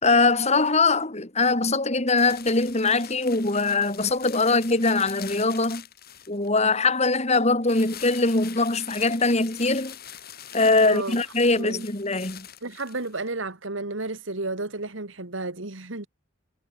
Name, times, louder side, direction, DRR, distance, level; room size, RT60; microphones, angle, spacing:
voice 1, 0.0-5.8 6.3-9.9 10.5-12.5, left 3 dB, 35° left, 3.1 m, -22 dB
sound 1, 2.2-6.7 7.6-13.3, left 10 dB, 50° left, 6.7 m, -43 dB
voice 2, 10.9-11.2 11.6-11.8 12.6-16.1, right 2 dB, 70° right, 2.2 m, -32 dB
head